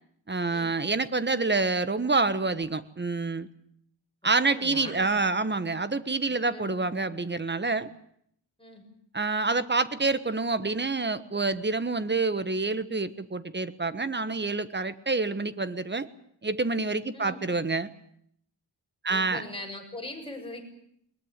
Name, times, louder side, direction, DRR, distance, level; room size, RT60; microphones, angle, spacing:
voice 1, 0.3-3.5 4.2-7.9 9.1-16.1 16.4-17.9 19.0-19.4, right 3 dB, 25° right, 14 dB, 1.3 m, -27 dB
voice 2, 4.5-5.2 6.3-6.7 8.6-8.8 17.1-17.4 19.1-20.6, left 2 dB, 10° left, 1 dB, 7.0 m, -41 dB
22.0 x 20.5 x 9.0 m, 0.69 s
wide cardioid pair, 120°, 45 cm